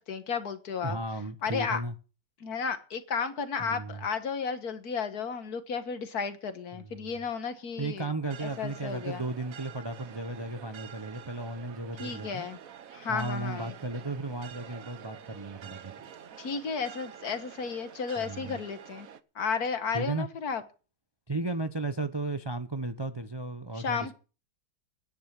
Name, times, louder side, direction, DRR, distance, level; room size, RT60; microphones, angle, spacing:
voice 1, 0.0-1.0 1.4-1.8 2.4-8.1 8.4-9.2 12.0-12.6 12.9-13.7 16.4-19.1 19.4-20.6 23.7-24.1, left 6 dB, 65° left, 1.9 m, -33 dB
voice 2, 0.8-1.9 3.6-4.0 6.7-7.1 7.8-12.5 13.1-15.9 18.2-18.6 19.9-20.3 21.3-24.1, right 2 dB, 25° right, 0.5 m, -35 dB
sound 1, 8.2-19.2, right 8 dB, 60° right, 1.3 m, -48 dB
10.5 x 9.7 x 7.5 m
omnidirectional pair, 1.8 m